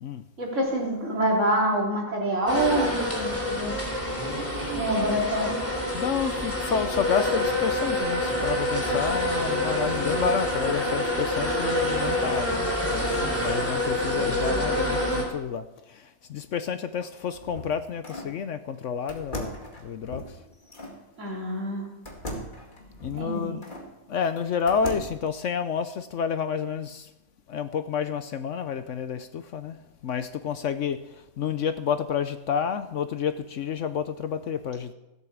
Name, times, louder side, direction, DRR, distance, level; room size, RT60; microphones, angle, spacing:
voice 1, 0.4-3.7 4.7-5.6 14.1-14.6 21.2-21.9 23.1-23.6, right 1 dB, 55° right, -2 dB, 3.6 m, -26 dB
sound 1, 2.5-15.2, left 1 dB, 10° left, 3.3 m, -27 dB
voice 2, 5.9-12.6 12.9-13.0 13.4-15.6 16.3-19.5 19.8-20.2 23.0-23.6 24.1-27.0 27.5-29.8 30.0-31.0 31.4-34.9, left 7 dB, 65° left, 11 dB, 0.9 m, -29 dB
sound 2, 17.2-18.4 19.1-21.0 22.1-23.9 24.4-25.3, equal, 35° left, 2.3 m, -38 dB
16.0 x 8.4 x 7.2 m, 0.96 s
omnidirectional pair, 1.5 m